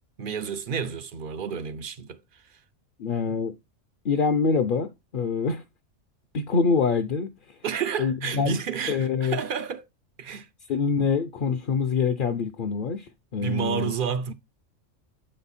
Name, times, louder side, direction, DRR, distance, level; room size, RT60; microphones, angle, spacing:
voice 1, 0.2-2.4 7.6-9.9 10.2-10.5 13.4-14.3, right 7 dB, 55° right, 0.6 m, -30 dB
voice 2, 3.0-3.5 4.0-5.6 6.3-7.3 8.0-8.6 8.9-9.4 10.7-13.9, left 5 dB, 50° left, 0.8 m, -25 dB
7.6 x 4.4 x 4.1 m
omnidirectional pair, 1.3 m